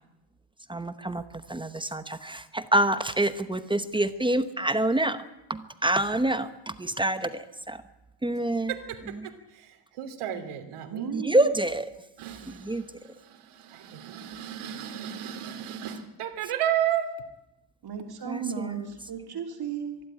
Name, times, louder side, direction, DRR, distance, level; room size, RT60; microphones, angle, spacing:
voice 1, 0.7-1.2 1.5-5.2 5.5-7.8 8.2-8.7 11.1-11.9 12.7-12.8 18.3-18.4, right 1 dB, 10° right, 0.8 m, -26 dB
voice 2, 8.7-11.1 12.2-17.1, right 10 dB, 80° right, 2.9 m, -33 dB
voice 3, 10.9-11.5 17.8-20.0, right 7 dB, 50° right, 3.2 m, -35 dB
24.5 x 12.0 x 9.9 m
cardioid pair, 140°, 50 cm